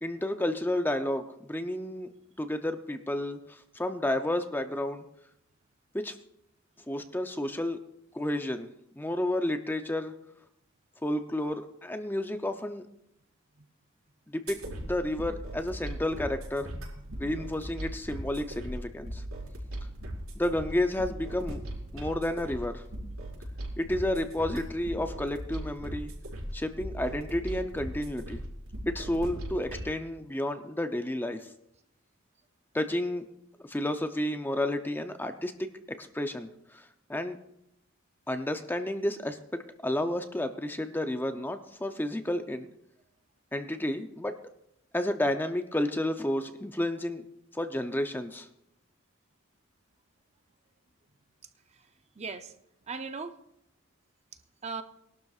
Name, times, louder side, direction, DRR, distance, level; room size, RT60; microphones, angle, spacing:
voice 1, 0.0-2.1 2.4-5.0 5.9-6.1 6.9-7.8 8.1-8.7 9.0-10.1 11.0-12.8 14.3-16.7 17.2-19.2 20.4-21.6 21.9-22.8 23.8-26.1 26.5-28.4 28.9-31.4 32.7-33.3 33.6-35.7 36.0-36.5 36.7-36.8 37.1-37.4 38.3-42.7 43.5-44.3 44.9-47.2 47.5-48.5, left 1 dB, 10° left, 7 dB, 0.6 m, -31 dB
sound 1, 14.5-29.9, right 1 dB, 85° right, 4.9 m, -39 dB
voice 2, 16.6-17.2 52.2-52.5 52.9-53.4 54.6-54.8, right 4 dB, 30° right, 8 dB, 0.6 m, -39 dB
21.5 x 12.0 x 2.4 m, 0.77 s
head